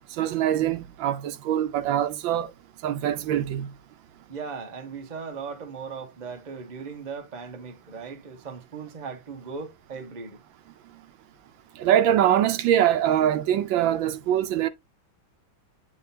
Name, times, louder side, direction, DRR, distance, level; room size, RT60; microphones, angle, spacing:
voice 1, 0.2-2.5 2.8-3.7 11.8-14.7, right 11 dB, 80° right, 1.4 m, -23 dB
voice 2, 4.3-10.4, right 5 dB, 30° right, 0.9 m, -38 dB
9.2 x 3.8 x 2.7 m
omnidirectional pair, 2.1 m